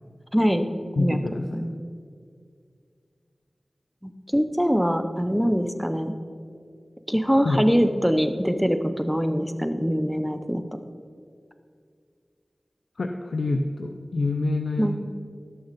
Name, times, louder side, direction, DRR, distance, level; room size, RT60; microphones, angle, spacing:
voice 1, 0.3-0.6 1.0-1.7 4.0-6.1 7.1-10.6 14.8-14.9, equal, ahead, 8 dB, 0.7 m, -23 dB
voice 2, 1.0-1.7 7.4-7.6 13.0-14.9, left 2 dB, 85° left, 4 dB, 0.5 m, -27 dB
16.5 x 6.6 x 4.2 m, 2.2 s
wide cardioid pair, 45°, 0 cm